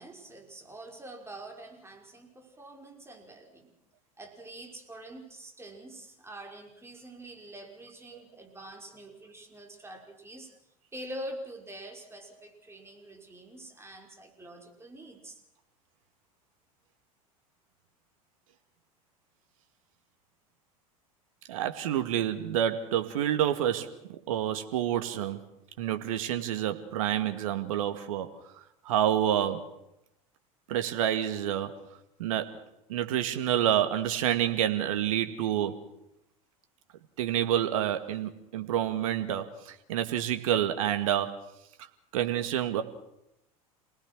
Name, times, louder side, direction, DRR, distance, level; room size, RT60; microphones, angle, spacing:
voice 1, 0.0-3.7 4.2-10.5 10.9-15.4, right 1 dB, 15° right, 2 dB, 5.7 m, -45 dB
voice 2, 21.5-24.0 24.3-25.4 25.8-28.3 28.6-29.7 30.7-31.8 32.2-32.6 32.9-35.8 37.2-41.4 42.1-42.8, right 11 dB, 70° right, 8 dB, 2.1 m, -28 dB
28.0 x 19.0 x 6.3 m, 0.83 s
figure-of-eight pair, 80°, 19 cm